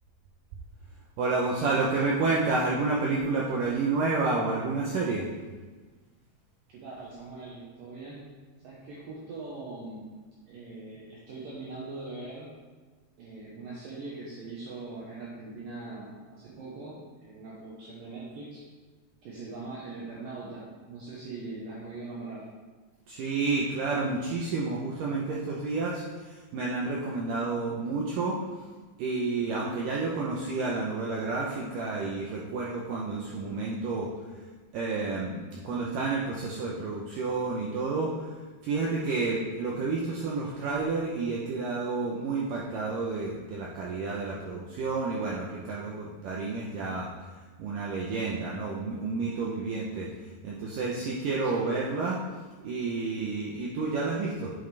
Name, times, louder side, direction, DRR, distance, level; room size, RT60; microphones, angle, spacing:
voice 1, 1.2-5.3 23.1-28.4 29.0-34.1 34.7-38.3 38.6-47.1 47.6-50.1 50.4-52.2 52.6-54.5, right 3 dB, 90° right, -4 dB, 1.9 m, -30 dB
voice 2, 6.7-8.4 8.6-10.1 10.5-12.5 13.2-18.7 19.2-22.5 51.4-51.7, right 3 dB, 70° right, -5 dB, 2.5 m, -41 dB
8.5 x 7.7 x 3.4 m, 1.4 s
omnidirectional pair, 4.9 m